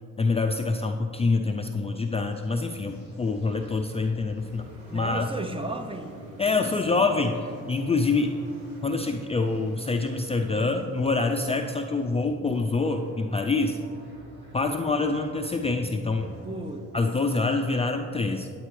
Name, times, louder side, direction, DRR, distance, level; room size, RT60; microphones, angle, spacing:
voice 1, 0.2-5.3 6.4-7.4 7.7-8.4 8.8-13.8 14.5-16.3 16.9-18.5, left 3 dB, 20° left, 4 dB, 0.4 m, -26 dB
sound 1, 2.3-17.6, right 1 dB, 35° right, 2.4 m, -49 dB
sound 2, 4.4-10.7, right 2 dB, 75° right, 1.5 m, -50 dB
voice 2, 4.9-6.1 6.6-7.4 14.6-14.8 16.4-16.9, right 2 dB, 20° right, 7 dB, 0.6 m, -36 dB
9.8 x 8.4 x 3.2 m, 2.4 s
cardioid pair, 90°, 30 cm